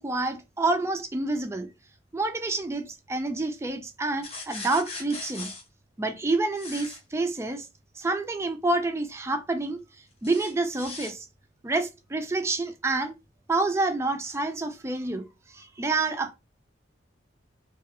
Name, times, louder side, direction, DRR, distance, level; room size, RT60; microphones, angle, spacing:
voice 1, 0.0-1.7 2.1-5.5 6.0-7.7 8.0-9.8 10.2-11.3 11.6-13.1 13.5-15.3 15.5-16.4, right 2 dB, 15° right, 0.3 m, -28 dB
sound 1, 4.2-5.6 6.6-7.0 10.2-11.1, left 3 dB, 35° left, 0.8 m, -39 dB
2.4 x 2.3 x 2.7 m
head